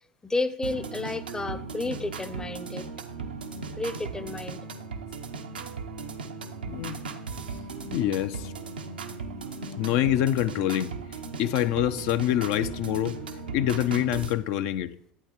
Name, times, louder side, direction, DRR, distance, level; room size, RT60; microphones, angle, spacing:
voice 1, 0.2-2.9 3.8-4.6, left 2 dB, 15° left, 0.6 m, -31 dB
sound 1, 0.6-14.3, right 4 dB, 85° right, 0.6 m, -37 dB
voice 2, 6.7-7.0 7.8-8.5 9.7-11.0 11.4-13.2 13.5-15.0, left 12 dB, 60° left, 0.4 m, -26 dB
11.5 x 8.4 x 3.0 m
figure-of-eight pair, 70°, 5 cm